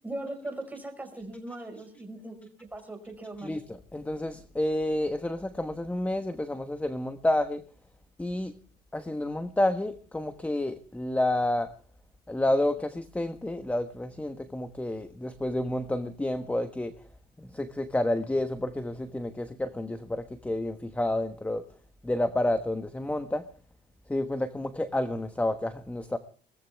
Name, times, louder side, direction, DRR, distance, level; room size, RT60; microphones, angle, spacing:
voice 1, 0.0-3.6, right 1 dB, 10° right, 5 dB, 5.3 m, -39 dB
voice 2, 3.4-7.6 8.2-8.5 8.9-11.7 12.3-16.9 17.5-21.6 22.0-23.4 24.1-26.2, left 1 dB, 10° left, 9 dB, 1.2 m, -29 dB
22.0 x 17.5 x 3.5 m, 0.41 s
cardioid pair, 110°, 17 cm